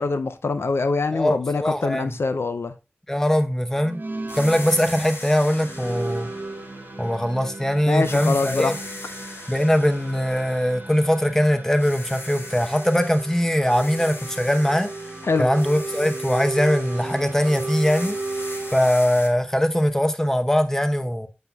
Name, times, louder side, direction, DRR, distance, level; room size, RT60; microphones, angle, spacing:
voice 1, 0.0-2.7 7.9-8.7 15.3-15.5, left 3 dB, 85° left, 0.5 m, -24 dB
voice 2, 1.1-2.2 3.1-4.0 4.4-6.3 7.0-8.8 9.5-14.9 15.4-18.2 18.7-21.3, equal, 10° left, 0.8 m, -21 dB
sound 1, 3.8-18.9, right 2 dB, 50° right, 0.9 m, -35 dB
sound 2, 4.3-7.6 8.0-11.4 11.8-19.3, left 2 dB, 70° left, 1.1 m, -40 dB
7.6 x 5.5 x 2.3 m
wide cardioid pair, 45°, 4 cm